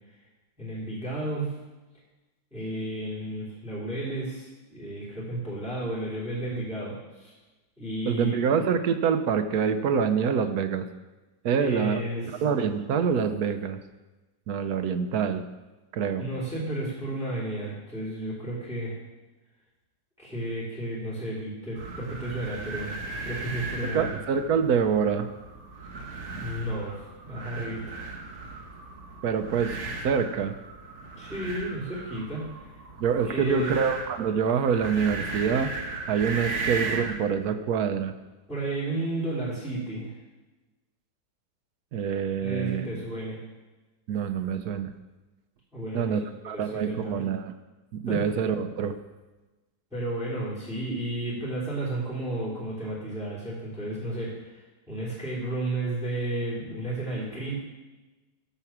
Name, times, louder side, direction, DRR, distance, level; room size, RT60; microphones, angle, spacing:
voice 1, 0.6-1.5 2.5-7.3 7.8-8.4 11.6-12.4 16.1-19.0 20.2-22.9 23.2-24.2 26.4-27.0 27.2-28.0 31.2-32.7 33.2-33.8 38.5-40.1 42.4-43.4 45.7-46.2 46.5-47.2 48.1-48.2 49.9-54.6 54.9-57.5, right 1 dB, ahead, -8 dB, 3.3 m, -32 dB
voice 2, 8.0-10.9 11.4-12.0 12.4-13.8 14.5-15.5 15.9-16.3 23.8-25.3 29.2-29.8 30.0-30.5 33.0-35.7 36.1-38.1 41.9-42.9 44.1-44.9 45.9-47.5 47.9-49.0, right 6 dB, 65° right, 8 dB, 1.1 m, -26 dB
sound 1, 21.7-37.2, right 3 dB, 45° right, 1.3 m, -37 dB
12.5 x 4.7 x 7.2 m, 1.2 s
omnidirectional pair, 1.9 m